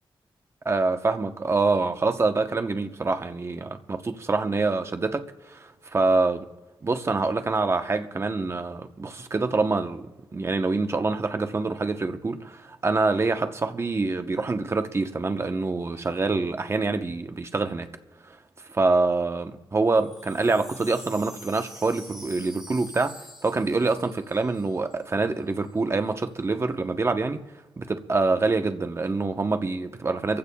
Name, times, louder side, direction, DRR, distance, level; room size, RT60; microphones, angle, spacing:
voice 1, 0.6-6.5 6.8-17.9 18.2-18.4 18.7-27.4 27.8-30.4, right 3 dB, 30° right, 0.9 m, -26 dB
Wind chime, 19.9-25.1 25.3-25.4 25.6-26.1, equal, 5° right, 5.7 m, -46 dB
24.5 x 15.5 x 2.3 m
cardioid pair, 100°, 9 cm